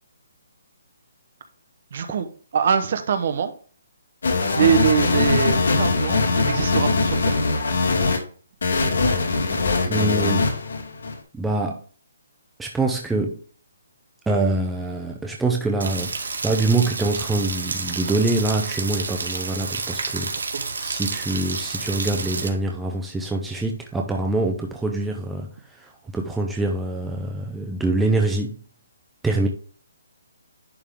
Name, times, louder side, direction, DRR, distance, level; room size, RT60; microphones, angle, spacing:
voice 1, 1.9-3.5 4.6-7.4 20.5-20.7, right 7 dB, 40° right, 0.8 m, -23 dB
sound 1, 4.2-8.2 8.6-11.1, left 3 dB, 70° left, 2.4 m, -21 dB
voice 2, 9.9-10.5 11.3-11.8 12.6-13.4 14.3-20.3 20.8-28.6 29.2-29.5, right 2 dB, 5° right, 0.4 m, -25 dB
Rain, 15.8-22.5, right 4 dB, 80° right, 2.0 m, -30 dB
10.5 x 3.6 x 3.5 m
hypercardioid pair, 175°, 0 cm